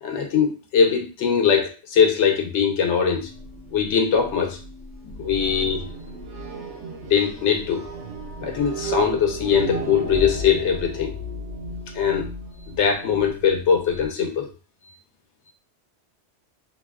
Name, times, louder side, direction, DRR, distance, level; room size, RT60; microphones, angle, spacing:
voice 1, 0.0-3.3 3.7-4.6 5.0-5.8 7.0-7.8 8.4-11.1 11.9-12.3 12.8-14.5, left 7 dB, 80° left, 3 dB, 0.9 m, -21 dB
sound 1, 3.1-14.1, right 2 dB, 80° right, 0.9 m, -34 dB
2.5 x 2.2 x 2.3 m, 0.34 s
omnidirectional pair, 1.2 m